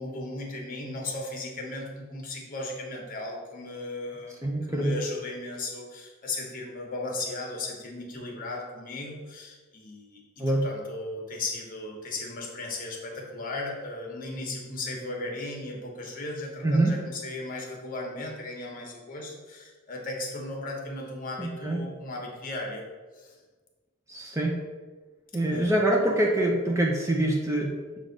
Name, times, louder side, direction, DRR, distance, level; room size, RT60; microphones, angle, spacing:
voice 1, 0.0-22.9 23.1-23.4 25.5-25.7, left 2 dB, 40° left, 0 dB, 1.2 m, -36 dB
voice 2, 4.4-5.0 10.4-10.6 16.6-17.0 21.4-21.8 24.1-24.5 25.3-27.7, right 1 dB, 15° right, 0 dB, 0.5 m, -25 dB
7.5 x 2.6 x 5.2 m, 1.3 s
head